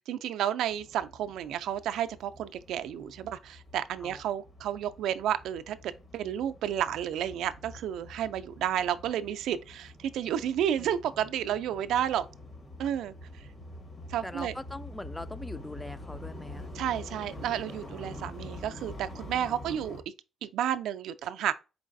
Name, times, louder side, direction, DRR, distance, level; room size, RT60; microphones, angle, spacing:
voice 1, 0.1-12.3 12.8-13.1 14.1-14.5 16.7-20.0 20.4-21.5, right 10 dB, 80° right, 0.3 m, -31 dB
sound 1, 0.7-20.0, left 1 dB, 45° left, 1.2 m, -46 dB
voice 2, 14.2-16.7 17.8-18.3 19.4-19.8, left 1 dB, 10° left, 0.3 m, -42 dB
4.6 x 3.1 x 2.5 m
cardioid pair, 90°, 0 cm